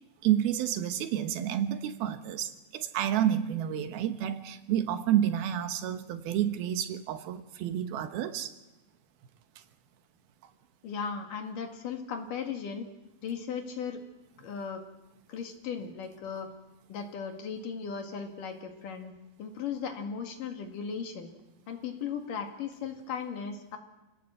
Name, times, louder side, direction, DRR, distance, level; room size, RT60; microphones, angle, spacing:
voice 1, 0.2-8.5, right 10 dB, 85° right, 9 dB, 3.1 m, -29 dB
voice 2, 10.8-12.9 13.2-14.0 14.4-14.8 15.3-16.5 16.9-19.1 19.4-21.3 21.7-23.8, left 6 dB, 65° left, 4 dB, 3.4 m, -37 dB
28.0 x 17.5 x 7.8 m, 1.0 s
omnidirectional pair, 4.3 m